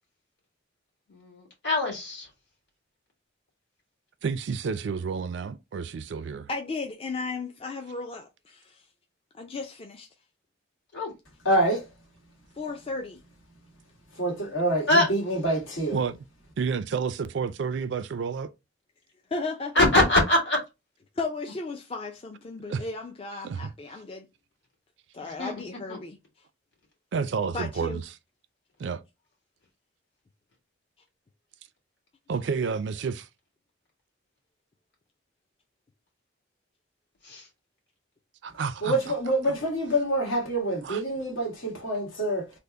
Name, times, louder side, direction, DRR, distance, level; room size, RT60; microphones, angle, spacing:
voice 1, 1.1-2.3 10.9-11.1 14.9-15.1 19.8-20.6 25.2-25.5 25.9-26.0 37.2-37.5, left 1 dB, 65° left, 1.7 m, -23 dB
voice 2, 4.2-6.5 15.9-16.2 16.6-18.5 22.7-22.8 23.4-23.7 27.1-28.0 28.8-29.0 32.3-33.3 38.4-39.0 39.5-39.6 40.8-41.0, right 5 dB, 65° right, 0.3 m, -30 dB
voice 3, 6.5-8.8 9.3-10.1 12.6-13.2 19.3-19.9 21.2-24.3 25.1-26.2 27.5-28.0, left 3 dB, 30° left, 0.3 m, -35 dB
voice 4, 11.4-11.9 14.1-16.0 38.8-42.5, right 1 dB, 85° left, 1.4 m, -26 dB
3.4 x 2.0 x 3.7 m
head